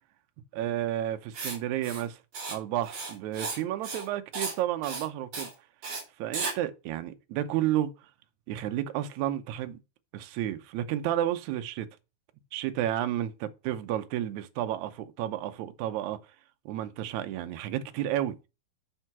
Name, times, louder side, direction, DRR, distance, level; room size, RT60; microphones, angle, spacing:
voice 1, 0.5-2.2 2.5-5.5 6.2-7.9 8.5-9.8 10.1-11.9 12.5-16.2 16.7-18.4, right 12 dB, 75° right, 1.9 m, -31 dB
Writing, 1.3-1.6 1.8-2.0 2.3-2.6 2.8-3.6 3.8-4.1 4.3-4.6 4.8-5.0 5.3-5.5 5.8-6.0 6.3-6.5, right 4 dB, 55° right, 4.1 m, -34 dB
9.1 x 3.8 x 6.0 m
omnidirectional pair, 4.0 m